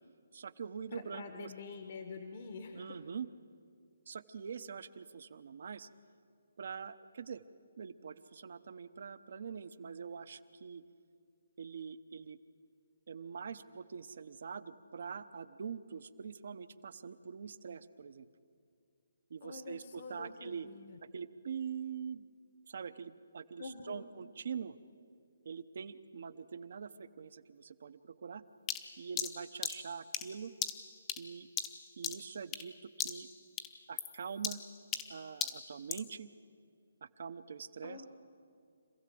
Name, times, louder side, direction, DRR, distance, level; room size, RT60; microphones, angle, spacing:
voice 1, 0.3-1.5 2.7-3.3 4.1-5.9 6.6-7.4 7.8-10.8 11.6-12.4 13.1-18.3 19.3-20.7 21.1-22.3 22.7-24.8 25.4-28.4 29.0-30.5 31.2-31.5 32.0-33.3 33.9-34.6 35.1-36.3 37.0-38.0, right 6 dB, 60° right, 13 dB, 0.8 m, -44 dB
voice 2, 0.9-3.0 19.4-21.0 23.6-24.0 37.8-38.1, left 4 dB, 45° left, 5 dB, 1.3 m, -46 dB
sound 1, 28.7-32.7 33.0-33.3 33.6-36.1, left 9 dB, 20° left, 0.9 m, -39 dB
26.0 x 15.5 x 7.7 m, 2.3 s
hypercardioid pair, 155°, 0 cm